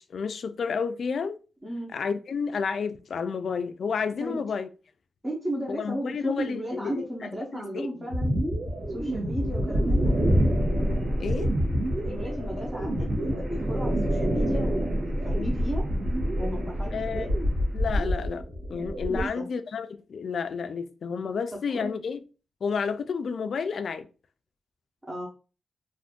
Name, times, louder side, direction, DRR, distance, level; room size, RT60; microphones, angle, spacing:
voice 1, 0.0-1.4 1.9-4.7 5.7-7.1 7.5-8.1 11.2-11.5 16.9-17.3 17.7-22.2 22.6-24.1, left 5 dB, 55° left, 0.3 m, -31 dB
voice 2, 1.6-1.9 4.2-4.4 5.2-8.3 8.9-10.1 12.0-15.8 16.4-17.3 19.1-19.4 21.7-21.9 25.1-25.3, right 1 dB, 15° right, 0.8 m, -34 dB
sound 1, 8.1-19.3, equal, 85° right, 1.1 m, -27 dB
sound 2, 8.6-18.2, equal, 50° right, 0.9 m, -33 dB
2.6 x 2.5 x 3.6 m
wide cardioid pair, 170°, 0 cm